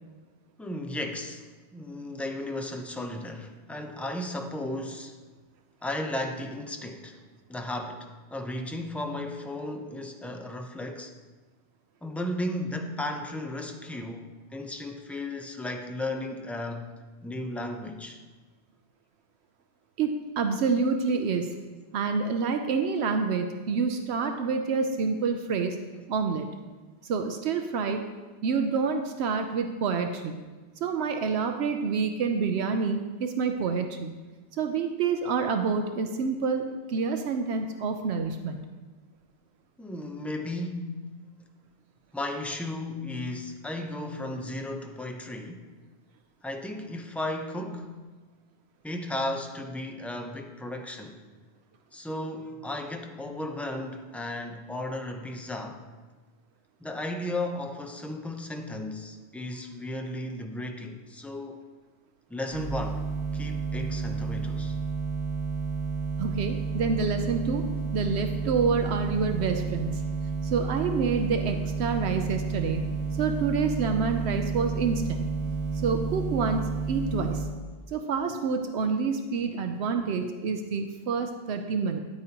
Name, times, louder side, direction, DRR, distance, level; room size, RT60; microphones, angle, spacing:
voice 1, 0.6-1.5 1.7-5.2 5.8-7.2 7.5-11.1 12.0-14.3 14.5-16.9 17.2-18.2 39.8-41.1 42.1-45.7 46.4-48.0 48.8-51.2 51.9-55.9 56.8-61.6 62.3-63.1 63.3-64.8, left 1 dB, ahead, 4 dB, 0.4 m, -35 dB
voice 2, 20.0-21.5 21.9-25.8 26.1-26.5 27.0-28.0 28.4-30.4 30.8-34.1 34.5-38.6 66.2-67.6 67.9-70.0 70.4-72.8 73.2-75.2 75.7-77.4 77.9-82.0, right 5 dB, 75° right, 6 dB, 0.9 m, -28 dB
sound 1, 62.5-77.4, right 5 dB, 60° right, 3.5 m, -31 dB
9.7 x 9.0 x 2.9 m, 1.3 s
omnidirectional pair, 1.1 m